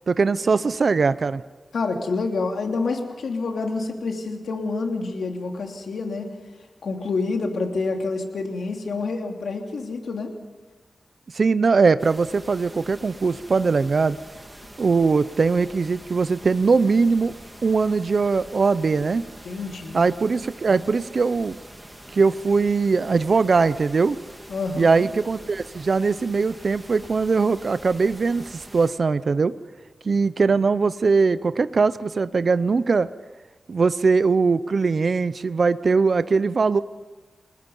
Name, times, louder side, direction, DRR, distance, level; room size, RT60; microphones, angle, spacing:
voice 1, 0.1-1.4 11.3-14.2 14.8-17.3 17.6-19.2 19.9-21.6 22.1-24.2 24.8-29.5 30.0-33.1 33.7-36.8, right 4 dB, 55° right, 14 dB, 0.6 m, -21 dB
voice 2, 1.7-6.3 6.8-10.3 19.4-20.1 24.5-25.1, left 3 dB, 85° left, 3 dB, 3.0 m, -28 dB
sound 1, 12.0-28.9, right 1 dB, 10° right, 3.0 m, -45 dB
29.0 x 20.0 x 5.5 m, 1.2 s
wide cardioid pair, 115°, 0 cm